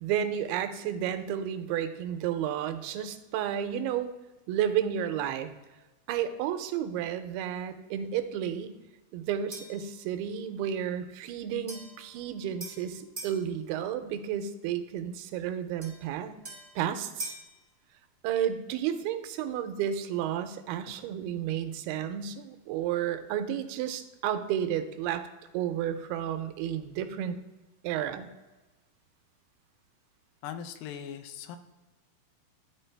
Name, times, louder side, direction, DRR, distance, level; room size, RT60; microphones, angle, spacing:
voice 1, 0.0-4.1 4.5-5.5 6.1-8.8 9.1-16.4 16.8-17.3 18.2-25.3 25.5-27.4 27.8-28.3, right 9 dB, 85° right, 8 dB, 2.5 m, -32 dB
sound 1, 9.5-9.9 11.7-13.4 15.8-17.5, right 1 dB, 60° right, 0.6 m, -43 dB
voice 2, 30.4-31.6, left 9 dB, 85° left, 8 dB, 2.5 m, -40 dB
12.0 x 4.5 x 3.3 m, 1.1 s
omnidirectional pair, 4.4 m